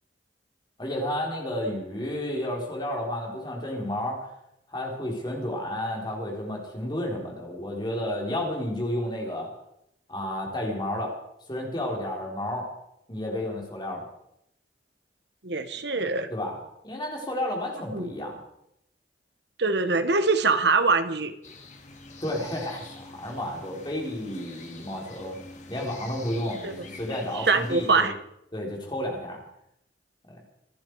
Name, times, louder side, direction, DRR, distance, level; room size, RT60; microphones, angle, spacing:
voice 1, 0.8-4.3 4.7-9.5 10.1-11.1 11.5-12.7 13.1-14.0 16.3-16.6 16.8-18.4 22.2-25.4 25.7-28.1 28.5-29.4 30.3-30.4, left 1 dB, 25° left, 0 dB, 4.0 m, -31 dB
voice 2, 15.4-16.3 17.9-18.1 19.6-21.3 26.6-26.8 27.3-28.1, right 4 dB, 70° right, 9 dB, 1.3 m, -23 dB
sound 1, 21.4-27.9, left 3 dB, 40° left, 2.3 m, -46 dB
27.0 x 10.5 x 4.8 m, 0.79 s
head